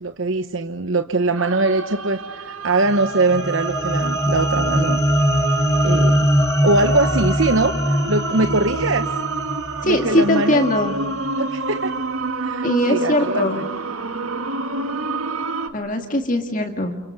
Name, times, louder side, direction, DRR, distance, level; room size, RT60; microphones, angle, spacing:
voice 1, 0.0-5.0 5.8-6.2 6.6-9.1 9.8-10.7 11.4-11.9 12.4-13.6, right 2 dB, 65° right, 8 dB, 1.0 m, -22 dB
sound 1, 1.4-15.7, right 4 dB, 80° right, 2.0 m, -28 dB
sound 2, 2.9-11.3, equal, 15° left, 1.5 m, -22 dB
voice 2, 9.8-11.0 12.6-13.6 15.7-17.0, left 1 dB, 40° left, 4 dB, 2.0 m, -20 dB
29.5 x 29.0 x 6.8 m, 0.91 s
head